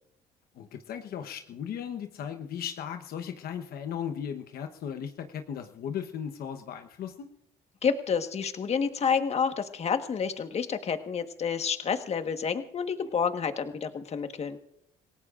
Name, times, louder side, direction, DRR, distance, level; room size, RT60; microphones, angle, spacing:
voice 1, 0.5-7.3, left 8 dB, 65° left, 7 dB, 1.1 m, -37 dB
voice 2, 7.8-14.6, left 6 dB, 40° left, 8 dB, 1.4 m, -29 dB
27.5 x 17.0 x 2.5 m, 0.76 s
cardioid pair, 110°, 17 cm